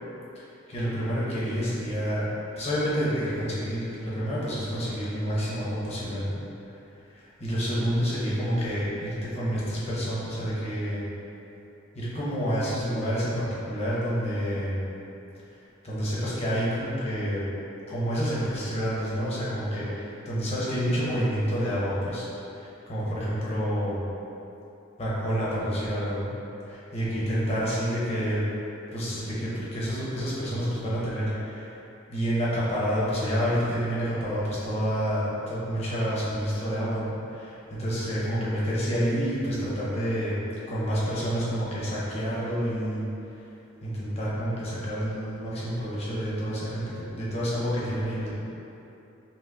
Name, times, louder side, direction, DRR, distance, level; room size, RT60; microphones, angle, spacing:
voice 1, 0.3-2.3 2.6-6.3 7.1-11.0 11.9-14.8 15.8-17.4 17.9-22.3 22.5-24.0 25.0-26.3 26.6-28.5 28.9-31.7 32.1-40.4 40.7-43.1 43.8-48.4, equal, 35° left, -8 dB, 0.8 m, -28 dB
5.3 x 2.1 x 2.4 m, 2.9 s
head